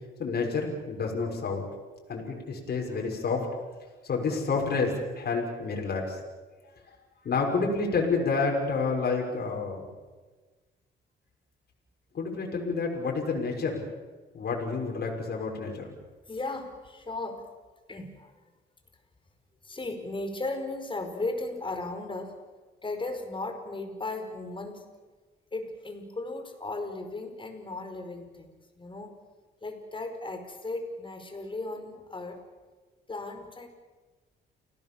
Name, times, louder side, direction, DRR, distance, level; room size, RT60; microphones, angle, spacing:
voice 1, 0.2-1.6 2.1-3.6 4.0-6.2 6.9-7.0 7.2-9.9 12.1-13.9 14.3-15.9, left 4 dB, 55° left, 0 dB, 6.2 m, -29 dB
voice 2, 16.3-17.4 17.9-18.3 19.6-22.4 22.8-24.8 25.5-29.2 29.6-32.4 33.1-33.7, left 2 dB, 25° left, 6 dB, 5.1 m, -36 dB
29.5 x 18.5 x 7.2 m, 1.3 s
cardioid pair, 90°, 20 cm